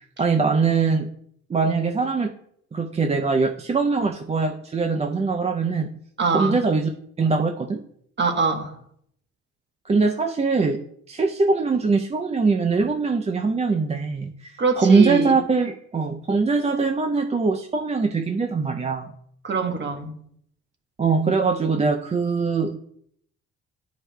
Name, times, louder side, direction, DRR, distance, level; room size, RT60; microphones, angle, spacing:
voice 1, 0.2-1.1 1.5-2.3 2.7-5.9 6.3-6.9 7.2-7.8 9.9-10.8 11.1-14.5 14.8-19.1 21.0-22.8, right 4 dB, 20° right, 0.4 m, -22 dB
voice 2, 6.2-6.6 8.2-8.7 14.6-15.4 19.4-20.1, right 4 dB, 35° right, 1.1 m, -23 dB
11.0 x 4.7 x 2.2 m
cardioid pair, 90°, 30 cm